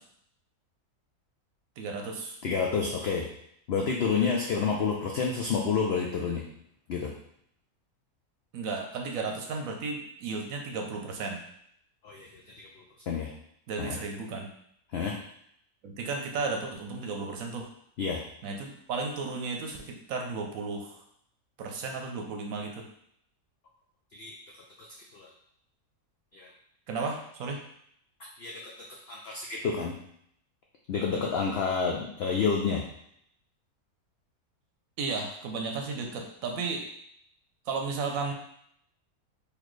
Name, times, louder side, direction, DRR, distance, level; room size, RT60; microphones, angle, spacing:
voice 1, 1.8-2.4 8.5-11.4 13.7-14.5 15.8-17.7 18.4-21.0 21.6-22.9 26.9-27.6 35.0-36.8 37.7-38.3, right 4 dB, 70° right, 2 dB, 1.0 m, -34 dB
voice 2, 2.4-3.3 3.7-6.4 6.9-7.1 12.0-12.7 13.1-13.3 13.8-14.0 14.9-15.1 18.0-18.2 24.1-24.3 24.8-24.9 25.1-25.3 26.3-26.5 28.4-30.0 30.9-32.8, left 5 dB, 80° left, 0 dB, 0.5 m, -29 dB
4.0 x 3.0 x 3.1 m, 0.71 s
omnidirectional pair, 1.6 m